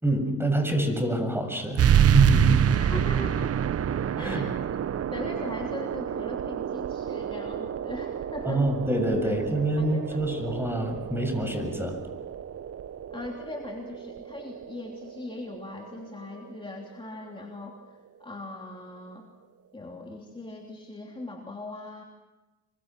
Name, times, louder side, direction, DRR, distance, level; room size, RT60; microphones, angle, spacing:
voice 1, 0.0-1.8 2.1-2.6 4.2-4.5 8.5-12.0, right 1 dB, 10° right, 5 dB, 7.2 m, -26 dB
sound 1, 1.8-16.9, right 9 dB, 50° right, 0.9 m, -28 dB
voice 2, 2.7-3.6 4.2-4.5 5.1-8.6 9.2-9.4 9.8-10.2 13.1-19.3 19.7-22.0, left 2 dB, 15° left, 0 dB, 3.1 m, -40 dB
27.5 x 24.0 x 6.1 m, 1.1 s
cardioid pair, 90°, 30 cm